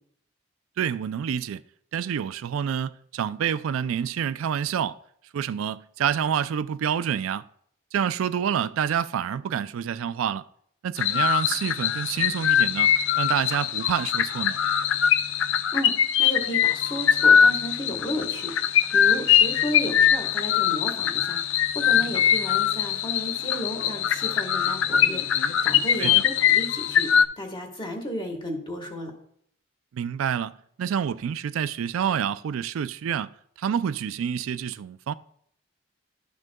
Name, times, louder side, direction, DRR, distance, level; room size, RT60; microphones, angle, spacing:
voice 1, 0.8-1.6 1.9-5.0 5.3-7.4 7.9-10.4 10.8-12.9 13.2-14.6 26.0-26.2 29.9-33.3 33.6-35.1, right 8 dB, 85° right, 0.3 m, -27 dB
sound 1, 11.0-27.3, left 9 dB, 70° left, 0.4 m, -22 dB
voice 2, 15.7-27.1 27.4-29.1, equal, 25° left, 1.4 m, -34 dB
11.5 x 6.2 x 2.2 m
head